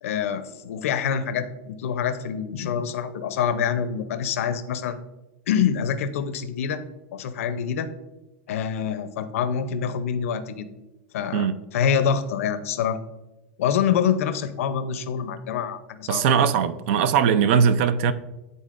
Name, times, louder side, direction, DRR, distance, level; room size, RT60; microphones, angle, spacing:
voice 1, 0.0-5.0 5.5-6.8 7.1-7.9 8.5-10.7 11.1-11.5 11.7-13.0 13.6-16.4, left 7 dB, 85° left, 0.5 m, -26 dB
voice 2, 16.1-18.1, right 7 dB, 65° right, 0.4 m, -20 dB
10.0 x 3.9 x 2.5 m
supercardioid pair, 140°, 7 cm